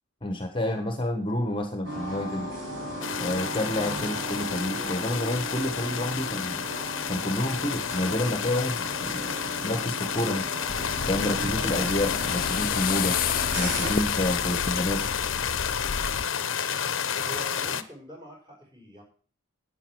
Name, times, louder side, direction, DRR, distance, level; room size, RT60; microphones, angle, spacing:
voice 1, 0.2-2.5 3.2-6.6 7.1-10.5 11.1-13.2 13.5-15.1, left 1 dB, 25° left, 6 dB, 1.2 m, -29 dB
sound 1, 1.8-13.9, equal, 60° right, 5.7 m, -37 dB
sound 2, 3.0-17.8, left 7 dB, 65° left, 0.9 m, -30 dB
sound 3, 10.7-16.2, left 7 dB, 40° left, 0.5 m, -32 dB
voice 2, 17.2-19.0, equal, 20° right, 0 dB, 5.2 m, -44 dB
11.0 x 9.2 x 6.2 m, 0.42 s
head